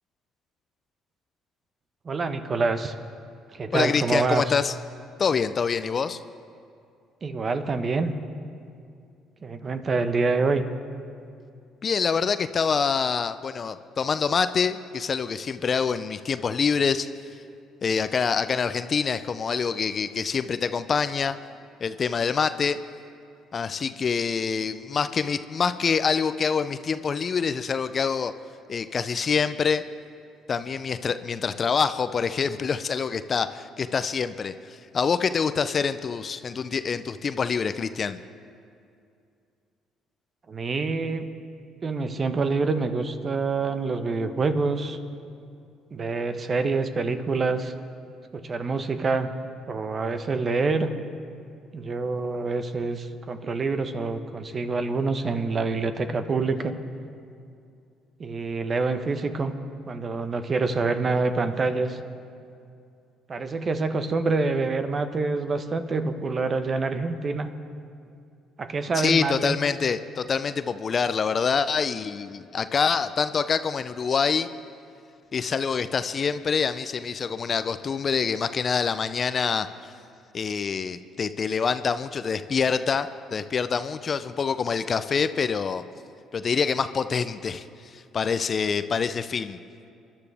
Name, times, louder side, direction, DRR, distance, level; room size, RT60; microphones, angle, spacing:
voice 1, 2.0-2.9 3.5-4.6 7.2-8.1 9.4-10.6 40.5-41.3 41.8-45.0 45.9-47.7 48.3-49.3 49.7-50.9 51.7-56.7 58.2-59.5 59.9-62.0 63.3-67.5 68.6-69.6, right 4 dB, 40° right, 9 dB, 1.2 m, -26 dB
voice 2, 3.7-4.7 5.2-6.2 11.8-17.1 17.8-21.4 21.8-22.8 23.5-28.3 28.7-29.8 30.5-38.2 69.0-74.5 75.3-79.7 80.3-85.8 86.3-87.6 87.9-89.6, left 6 dB, 45° left, 12 dB, 0.6 m, -26 dB
27.5 x 11.5 x 3.5 m, 2.4 s
hypercardioid pair, 55°, 0 cm